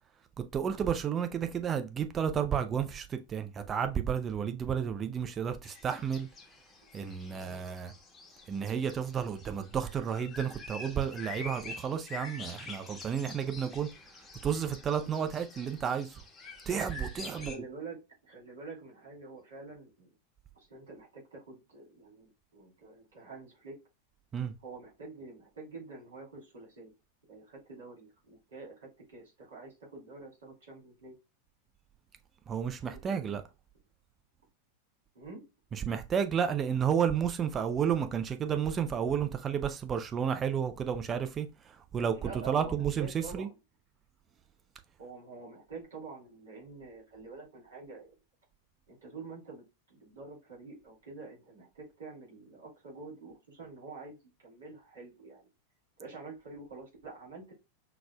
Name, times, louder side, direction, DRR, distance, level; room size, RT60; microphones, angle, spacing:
voice 1, 0.4-6.3 6.9-7.9 8.5-13.9 14.4-16.2 16.7-17.6 24.3-24.5 32.5-33.4 35.7-43.5, right 8 dB, 25° right, 0.6 m, -32 dB
sound 1, 5.6-17.6, left 3 dB, 15° left, 1.1 m, -47 dB
voice 2, 17.3-18.0 18.2-20.1 20.5-23.8 24.6-26.9 27.3-31.1 33.0-33.4 35.1-35.4 42.1-43.5 45.0-48.1 48.9-55.5 56.0-57.5, right 3 dB, 65° right, 2.5 m, -47 dB
5.9 x 2.6 x 2.2 m
figure-of-eight pair, 90°, 0 cm